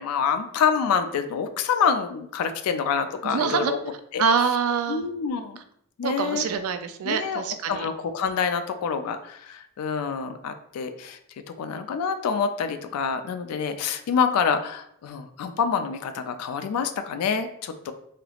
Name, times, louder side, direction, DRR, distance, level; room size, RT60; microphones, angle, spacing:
voice 1, 0.0-3.8 4.1-4.2 4.9-5.6 6.0-6.4 7.0-7.4 7.7-11.2 11.6-17.9, left 6 dB, 85° left, 8 dB, 0.3 m, -26 dB
voice 2, 3.2-3.7 4.2-5.1 6.0-7.9, right 6 dB, 75° right, 8 dB, 0.3 m, -25 dB
3.2 x 2.8 x 2.3 m, 0.69 s
head